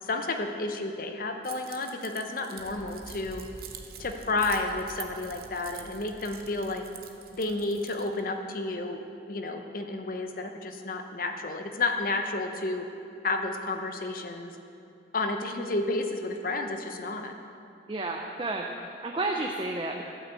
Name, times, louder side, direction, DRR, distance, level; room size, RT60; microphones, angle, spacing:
voice 1, 0.0-3.4 4.0-6.8 7.3-9.0 9.3-12.9 13.2-14.6 15.1-17.3, left 2 dB, 50° left, 5 dB, 0.9 m, -31 dB
Keys jangling, 1.4-8.2, right 10 dB, 55° right, 0.8 m, -47 dB
sound 1, 2.6-7.6, equal, ahead, 2.6 m, -49 dB
voice 2, 17.9-20.0, right 2 dB, 30° right, 1 dB, 0.6 m, -31 dB
11.5 x 6.2 x 8.2 m, 2.6 s
head